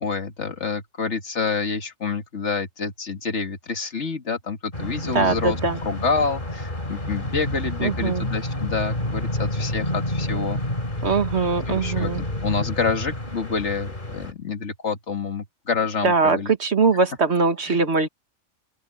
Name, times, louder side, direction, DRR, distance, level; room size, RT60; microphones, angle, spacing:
voice 1, 0.0-5.6 5.8-10.6 11.7-16.5 17.7-17.8, left 5 dB, 65° left, 2.1 m, -28 dB
sound 1, 4.7-14.3, left 1 dB, 40° left, 3.8 m, -29 dB
voice 2, 5.1-5.8 7.8-8.3 11.0-12.2 16.0-18.1, right 4 dB, 60° right, 1.9 m, -21 dB
open air
omnidirectional pair, 1.3 m